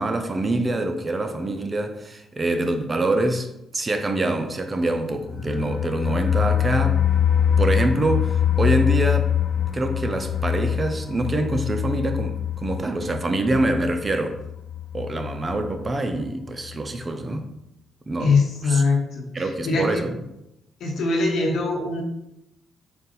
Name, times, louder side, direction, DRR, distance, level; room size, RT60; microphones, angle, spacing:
voice 1, 0.0-3.5 3.7-7.0 7.6-9.3 9.7-14.4 14.9-17.4 18.1-18.3 18.7-18.8 19.3-20.1, right 2 dB, 30° right, 6 dB, 0.4 m, -25 dB
sound 1, 5.2-15.9 16.2-16.3 16.7-16.8, left 9 dB, 45° left, 0.4 m, -24 dB
voice 2, 18.2-20.0 20.8-22.0, left 4 dB, 70° left, 0 dB, 1.0 m, -22 dB
4.0 x 2.5 x 3.9 m, 0.86 s
cardioid pair, 90°, 0 cm